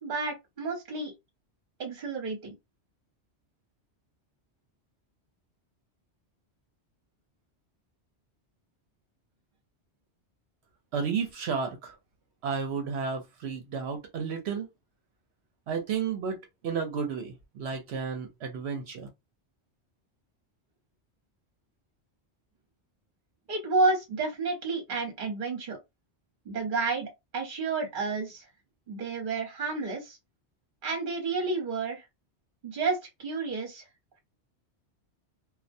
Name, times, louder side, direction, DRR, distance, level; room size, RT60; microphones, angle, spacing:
voice 1, 0.0-1.1 1.8-2.4 23.5-25.8 26.5-28.4 28.9-30.2 30.8-32.0 32.6-33.8, right 3 dB, 50° right, 1.0 m, -30 dB
voice 2, 10.9-11.9 12.4-14.7 15.7-16.4 16.6-19.1, right 6 dB, 70° right, 0.8 m, -32 dB
2.3 x 2.1 x 2.6 m
omnidirectional pair, 1.2 m